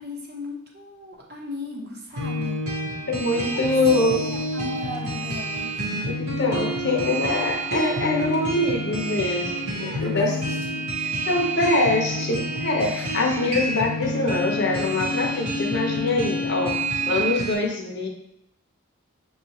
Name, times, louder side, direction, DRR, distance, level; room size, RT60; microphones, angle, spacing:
voice 1, 0.0-2.7 3.3-3.7 4.0-6.1 9.7-10.8 12.8-13.2, left 2 dB, 45° right, -2 dB, 0.9 m, -38 dB
sound 1, 2.2-17.5, right 1 dB, 75° right, 1.0 m, -28 dB
voice 2, 3.1-4.3 6.1-10.3 11.0-16.8 17.1-18.1, left 2 dB, 50° left, 1 dB, 0.7 m, -24 dB
6.6 x 2.3 x 2.9 m, 0.81 s
head